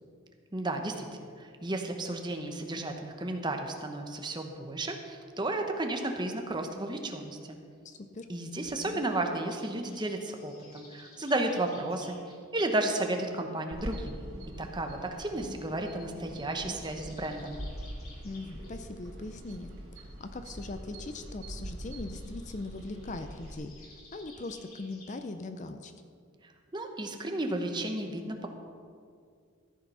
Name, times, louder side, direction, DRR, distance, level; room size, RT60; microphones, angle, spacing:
voice 1, 0.5-7.6 8.3-12.2 12.5-14.2 14.6-17.6 26.4-28.5, right 2 dB, 20° right, 4 dB, 1.0 m, -33 dB
voice 2, 7.8-8.3 8.8-9.0 18.2-19.7 20.0-23.7 24.1-25.9, left 2 dB, 35° left, 8 dB, 0.5 m, -40 dB
sound 1, 8.9-12.4 13.0-14.1 15.1-15.2 16.5-18.8 22.0-25.1, left 3 dB, 90° left, 2.6 m, -56 dB
sound 2, 13.7-23.5, equal, 80° right, 3.0 m, -43 dB
14.0 x 8.7 x 5.6 m, 2.2 s
head